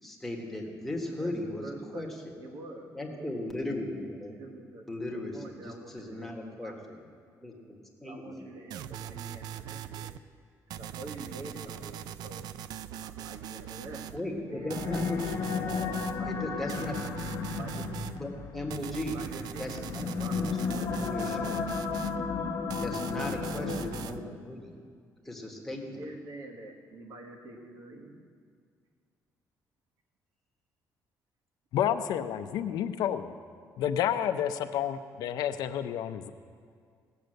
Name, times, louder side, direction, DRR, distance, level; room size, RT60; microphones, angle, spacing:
voice 1, 0.0-1.6 1.9-2.1 2.9-4.4 4.9-6.7 7.4-8.4 14.1-16.0 16.3-16.9 18.2-19.2 19.6-20.1 20.4-21.6 22.8-24.8 25.2-26.0, left 1 dB, 5° left, -1 dB, 1.5 m, -37 dB
voice 2, 1.1-3.5 4.3-4.8 5.1-6.8 8.0-10.2 10.7-12.5 13.0-15.4 15.9-17.0 17.6-18.1 19.1-20.4 20.7-20.9 23.5-24.2 25.9-28.2, right 2 dB, 60° right, 3 dB, 1.5 m, -46 dB
sound 1, 8.7-10.2 10.7-14.2 14.7-16.2 16.7-18.2 18.7-22.2 22.7-24.2, right 10 dB, 90° right, 0.4 m, -41 dB
sound 2, 14.5-24.4, left 5 dB, 55° left, 1.1 m, -34 dB
voice 3, 31.7-33.4 33.8-36.3, left 10 dB, 85° left, 9 dB, 0.6 m, -30 dB
17.0 x 6.7 x 7.8 m, 2.1 s
cardioid pair, 160°, 7 cm